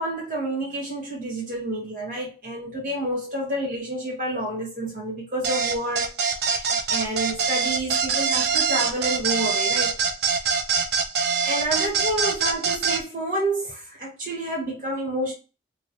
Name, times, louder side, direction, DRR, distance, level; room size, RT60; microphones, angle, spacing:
voice 1, 0.0-6.2 6.5-9.9 10.3-10.4 11.4-15.3, right 1 dB, 50° right, 1.6 m, -29 dB
sound 1, 5.4-13.0, right 5 dB, 70° right, 0.4 m, -24 dB
3.0 x 2.7 x 2.8 m
head